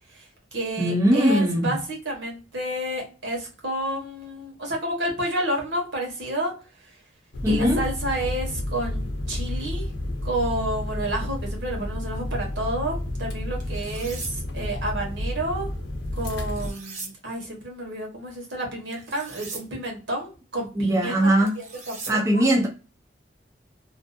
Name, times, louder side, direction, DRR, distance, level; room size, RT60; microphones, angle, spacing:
voice 1, 0.1-7.0 7.4-9.9 10.2-15.7 16.1-22.5, right 1 dB, 80° right, 1.1 m, -30 dB
voice 2, 0.8-1.7 7.4-7.8 20.8-21.5 22.1-22.7, right 1 dB, 15° right, 0.3 m, -20 dB
sound 1, 7.3-16.7, left 1 dB, 80° left, 0.6 m, -31 dB
sound 2, 13.6-14.3 16.4-17.1 18.9-19.6 21.5-22.1, right 4 dB, 40° right, 0.7 m, -39 dB
2.6 x 2.2 x 2.4 m
head